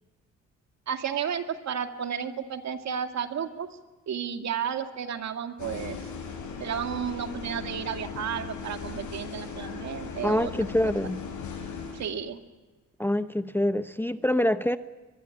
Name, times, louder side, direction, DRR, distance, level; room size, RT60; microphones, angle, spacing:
voice 1, 0.9-3.7 4.1-6.0 6.6-10.5 11.9-12.4, right 8 dB, 65° right, 2.3 m, -32 dB
sound 1, 5.6-12.1, left 5 dB, 75° left, 6.6 m, -38 dB
voice 2, 10.2-11.2 13.0-14.8, left 1 dB, 5° left, 0.8 m, -25 dB
23.0 x 22.0 x 9.9 m
cardioid pair, 90°, 30 cm